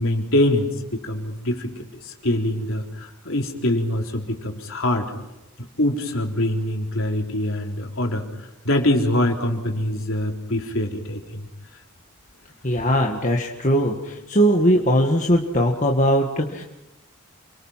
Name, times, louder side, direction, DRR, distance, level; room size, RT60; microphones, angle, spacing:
voice 1, 0.0-5.1 5.6-11.5, left 1 dB, 65° left, 2 dB, 3.8 m, -24 dB
voice 2, 12.6-16.6, equal, 35° left, 1 dB, 1.7 m, -20 dB
28.5 x 23.5 x 5.8 m, 0.95 s
head